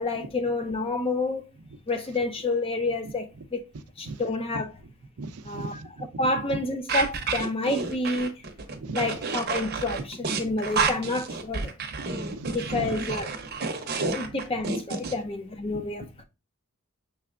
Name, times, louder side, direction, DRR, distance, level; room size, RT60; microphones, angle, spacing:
voice 1, 0.0-1.4 1.9-3.6 4.0-4.7 5.4-5.8 6.2-8.3 8.9-11.7 12.5-13.3 13.9-16.2, left 2 dB, 25° left, 0.5 m, -29 dB
voice 2, 5.2-6.1 6.5-6.6 8.8-9.1 10.4-10.5 12.0-12.9 15.0-15.1 15.7-15.9, right 3 dB, 80° right, 0.5 m, -37 dB
sound 1, 6.9-15.1, right 4 dB, 45° right, 0.7 m, -30 dB
6.4 x 3.2 x 2.4 m
head